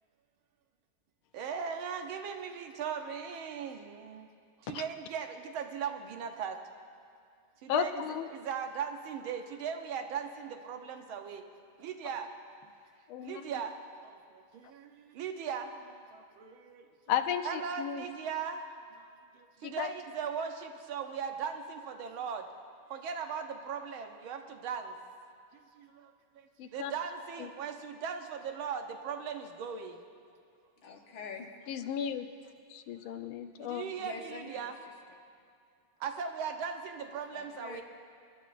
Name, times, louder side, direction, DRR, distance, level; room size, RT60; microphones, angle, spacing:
voice 1, 1.3-4.3 4.6-6.6 7.6-8.0 8.3-11.5 11.8-12.3 13.2-16.9 17.4-18.7 19.0-22.5 22.9-25.0 25.5-30.0 33.0-33.1 33.6-34.8 36.0-37.8, right 6 dB, 80° right, 5 dB, 1.7 m, -39 dB
voice 2, 7.7-8.3 13.1-13.4 17.1-18.0 19.6-19.9 26.6-26.9 31.7-32.3 32.7-33.8, left 8 dB, 90° left, 8 dB, 1.5 m, -34 dB
voice 3, 30.8-31.9 34.0-34.6 37.3-37.8, left 4 dB, 70° left, 2 dB, 1.9 m, -46 dB
26.0 x 12.0 x 2.5 m, 2.3 s
omnidirectional pair, 2.2 m